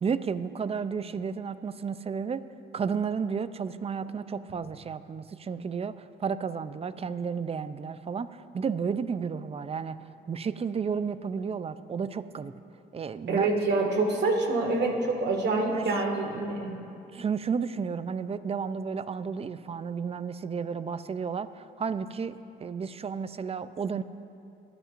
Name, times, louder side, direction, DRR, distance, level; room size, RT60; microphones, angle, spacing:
voice 1, 0.0-2.5 2.7-10.0 10.3-12.5 12.9-13.5 15.7-16.0 17.1-24.0, right 6 dB, 30° right, 13 dB, 0.5 m, -32 dB
voice 2, 13.3-16.8, right 3 dB, 60° right, 2 dB, 1.9 m, -26 dB
21.5 x 10.0 x 2.5 m, 2.7 s
cardioid pair, 90°, 20 cm